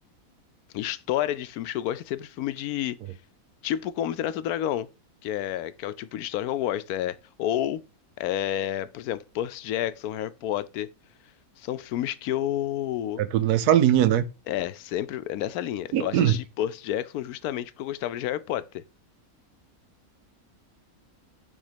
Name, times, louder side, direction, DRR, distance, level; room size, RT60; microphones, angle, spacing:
voice 1, 0.7-3.0 3.6-4.9 5.2-7.8 8.2-10.9 11.6-13.2 14.5-18.8, left 11 dB, 80° left, 1.1 m, -30 dB
voice 2, 13.2-14.3 15.9-16.4, right 11 dB, 90° right, 1.2 m, -20 dB
8.8 x 3.7 x 5.0 m
omnidirectional pair, 1.6 m